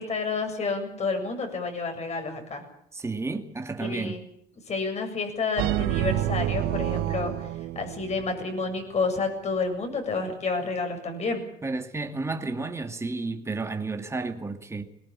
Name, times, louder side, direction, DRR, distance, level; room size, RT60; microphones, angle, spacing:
voice 1, 0.0-2.6 3.8-4.2 4.7-7.3 7.7-11.4, left 4 dB, 40° left, 7.5 m, -29 dB
voice 2, 2.9-4.1 11.6-14.8, right 3 dB, 15° right, 2.4 m, -32 dB
sound 1, 5.6-8.5, right 14 dB, 90° right, 1.3 m, -28 dB
21.5 x 19.5 x 8.8 m
cardioid pair, 110°, 17 cm